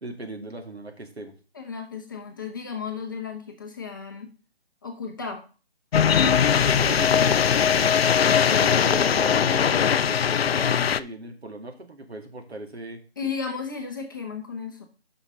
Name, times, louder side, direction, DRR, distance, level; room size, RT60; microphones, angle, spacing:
voice 1, 0.0-1.4 6.1-7.4 8.5-13.0, right 1 dB, 85° right, 4 dB, 2.1 m, -38 dB
voice 2, 1.5-4.3 4.8-5.4 8.4-9.1 13.2-14.8, left 5 dB, 20° left, 2 dB, 0.8 m, -34 dB
sound 1, 5.9-11.0, left 7 dB, 70° left, 0.5 m, -20 dB
5.8 x 5.7 x 5.1 m, 0.35 s
figure-of-eight pair, 165°, 31 cm